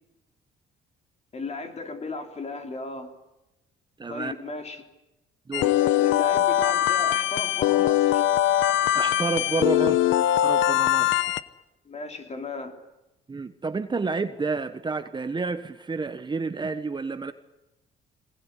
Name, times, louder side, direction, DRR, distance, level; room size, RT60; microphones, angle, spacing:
voice 1, 1.3-3.1 4.1-4.8 5.6-8.3 11.9-12.7, left 3 dB, 35° left, 5 dB, 3.7 m, -35 dB
voice 2, 4.0-4.3 5.5-5.7 8.9-11.3 13.3-17.3, right 4 dB, 25° right, 10 dB, 1.2 m, -30 dB
sound 1, 5.5-11.4, left 12 dB, 80° left, 0.9 m, -22 dB
22.5 x 19.5 x 9.8 m, 0.96 s
cardioid pair, 100°, 19 cm